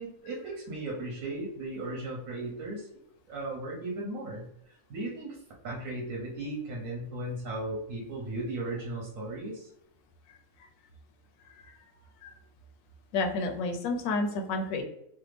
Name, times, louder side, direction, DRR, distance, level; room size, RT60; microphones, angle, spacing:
voice 1, 0.0-2.9 3.3-4.4 4.9-5.4 5.6-9.7, right 2 dB, 85° right, -3 dB, 1.2 m, -36 dB
voice 2, 11.4-11.9 12.2-12.3 13.1-14.8, left 3 dB, 80° left, 4 dB, 1.0 m, -31 dB
3.4 x 2.0 x 3.2 m, 0.76 s
omnidirectional pair, 1.4 m